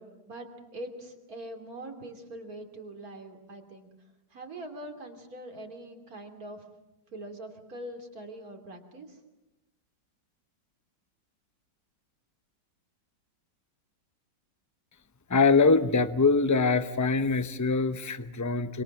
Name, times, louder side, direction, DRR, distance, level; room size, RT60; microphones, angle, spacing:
voice 1, 0.0-3.9 4.3-6.7 7.1-9.2, right 1 dB, 50° right, 5 dB, 3.3 m, -43 dB
voice 2, 15.3-18.8, left 4 dB, 20° left, 11 dB, 0.5 m, -23 dB
26.0 x 26.0 x 7.4 m, 1.0 s
omnidirectional pair, 2.0 m